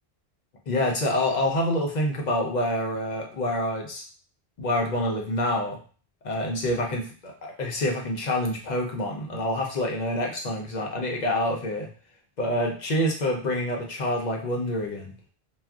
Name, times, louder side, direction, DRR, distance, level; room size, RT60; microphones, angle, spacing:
voice 1, 0.7-4.0 4.6-5.8 6.2-11.9 12.4-15.1, left 1 dB, 55° left, 1 dB, 0.6 m, -27 dB
2.4 x 2.1 x 3.4 m, 0.40 s
omnidirectional pair, 1.0 m